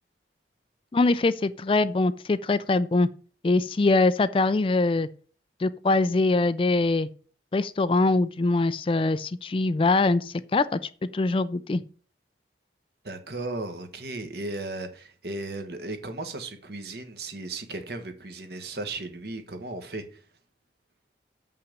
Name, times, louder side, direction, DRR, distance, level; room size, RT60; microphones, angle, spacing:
voice 1, 0.9-3.1 3.4-5.1 5.6-7.1 7.5-10.8 11.1-11.8, left 3 dB, 30° left, 0.3 m, -23 dB
voice 2, 13.0-20.2, right 2 dB, 60° right, 1.3 m, -36 dB
7.2 x 5.7 x 6.6 m
head